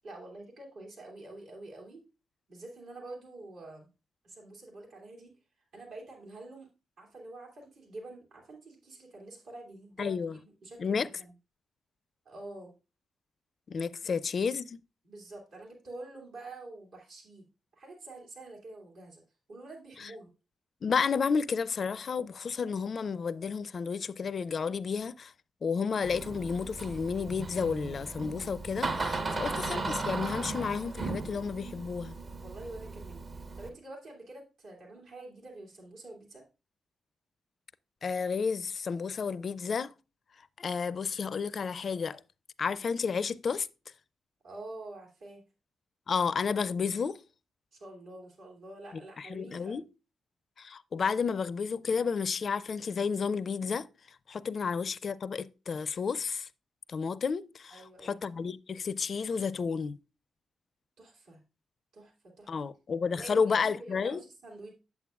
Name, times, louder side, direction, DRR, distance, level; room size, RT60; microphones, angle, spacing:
voice 1, 0.0-2.0 2.5-3.9 4.2-5.3 5.7-6.7 7.0-11.3 12.2-12.7 14.0-14.1 15.0-17.4 17.7-19.2 19.5-20.3 29.2-29.4 32.4-36.4 44.4-45.4 47.7-49.8 54.6-54.7 57.7-58.2 61.0-61.4 61.9-62.5 63.1-64.7, right 2 dB, 75° right, 2.6 m, -47 dB
voice 2, 10.0-10.4 10.8-11.1 13.7-14.8 20.8-25.3 25.6-32.1 38.0-39.9 40.6-42.2 42.6-43.7 46.1-47.2 49.2-49.8 50.6-53.9 54.3-56.5 56.9-60.0 62.5-64.2, left 5 dB, 55° left, 0.4 m, -31 dB
Door, 26.0-33.7, right 3 dB, 55° right, 1.5 m, -36 dB
8.4 x 8.1 x 2.4 m
hypercardioid pair, 40°, 0 cm